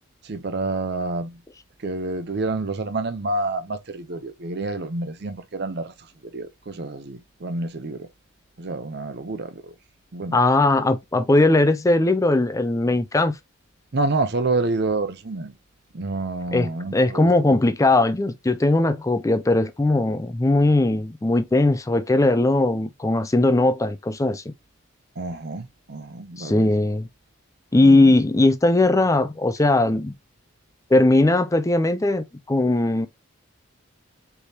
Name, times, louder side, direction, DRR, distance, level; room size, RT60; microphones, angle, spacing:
voice 1, 0.2-1.4 1.8-5.9 6.2-8.1 8.6-9.7 10.1-10.4 13.9-15.5 15.9-17.6 25.2-26.8 27.8-28.1, right 2 dB, 50° right, 0.6 m, -28 dB
voice 2, 10.3-13.3 16.5-24.4 26.4-27.1 27.7-30.1 30.9-33.1, left 2 dB, 15° left, 0.4 m, -19 dB
4.6 x 3.4 x 2.7 m
head